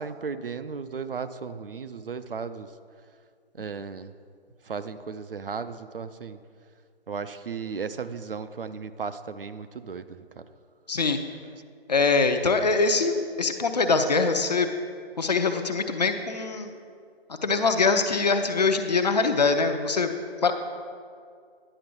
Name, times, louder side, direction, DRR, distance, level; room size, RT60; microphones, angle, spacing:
voice 1, 0.0-2.7 3.5-4.1 4.6-6.4 7.1-10.5, right 5 dB, 60° right, 11 dB, 0.5 m, -35 dB
voice 2, 10.9-11.2 11.9-14.7 15.2-16.7 17.4-20.1 20.4-20.5, left 4 dB, 40° left, 7 dB, 0.6 m, -23 dB
10.0 x 6.7 x 5.3 m, 2.2 s
figure-of-eight pair, 155°, 31 cm